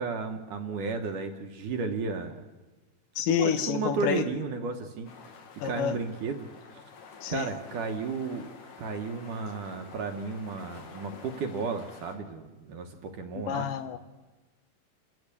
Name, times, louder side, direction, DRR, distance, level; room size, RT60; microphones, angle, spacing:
voice 1, 0.0-2.4 3.3-5.1 5.6-6.8 7.3-8.5 8.8-13.7, right 4 dB, 65° right, 5 dB, 2.3 m, -33 dB
voice 2, 3.2-4.2 5.6-6.0 7.2-7.5 13.5-14.0, left 10 dB, 75° left, 11 dB, 2.1 m, -28 dB
sound 1, 5.1-12.2, left 5 dB, 55° left, 3.6 m, -49 dB
29.0 x 14.0 x 8.4 m, 1.2 s
omnidirectional pair, 4.7 m